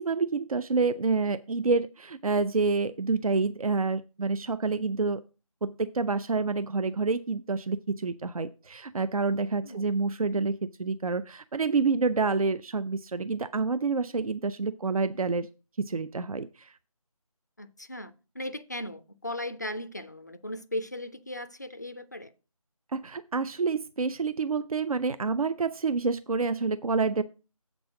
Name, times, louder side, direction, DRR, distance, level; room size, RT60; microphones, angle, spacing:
voice 1, 0.0-5.2 5.6-15.5 15.8-16.7 22.9-27.2, right 4 dB, 75° right, 0.5 m, -28 dB
voice 2, 17.6-22.3, left 1 dB, 30° left, 0.4 m, -37 dB
7.9 x 6.1 x 4.8 m
figure-of-eight pair, 165°, 19 cm